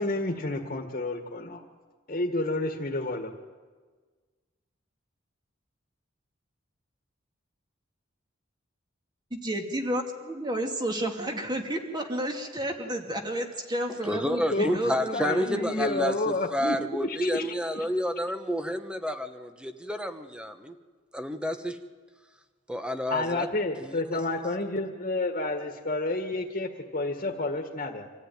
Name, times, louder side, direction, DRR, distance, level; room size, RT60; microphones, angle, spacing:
voice 1, 0.0-1.6 2.1-3.3 14.5-14.8 15.1-17.9 23.1-28.1, left 2 dB, 45° left, 3 dB, 1.8 m, -30 dB
voice 2, 9.3-15.7, right 1 dB, 20° right, 3 dB, 2.4 m, -31 dB
voice 3, 14.0-20.7 21.1-21.8 22.7-23.5 23.8-24.2, equal, 5° right, 8 dB, 1.2 m, -30 dB
25.5 x 14.5 x 9.3 m, 1.5 s
head